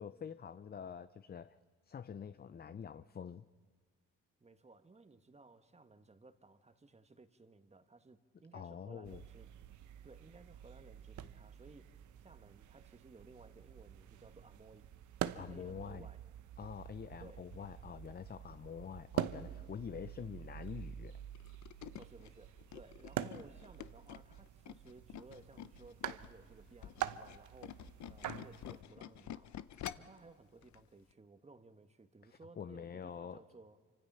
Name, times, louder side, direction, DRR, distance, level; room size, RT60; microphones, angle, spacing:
voice 1, 0.0-1.6 1.9-3.4 8.5-9.2 15.3-16.1 16.6-21.2 32.2-33.4, left 7 dB, 30° left, 13 dB, 0.6 m, -46 dB
voice 2, 4.4-9.5 10.0-14.9 15.2-16.2 17.2-17.4 22.0-29.5 29.8-33.8, right 3 dB, 20° right, 8 dB, 1.6 m, -59 dB
sound 1, 9.1-28.8, right 11 dB, 75° right, 0.9 m, -46 dB
Tools, 21.3-26.3 26.7-30.2 30.6-30.8 31.1-31.2, left 11 dB, 65° left, 0.9 m, -48 dB
28.0 x 25.5 x 5.7 m, 1.5 s
cardioid pair, 90°, 30 cm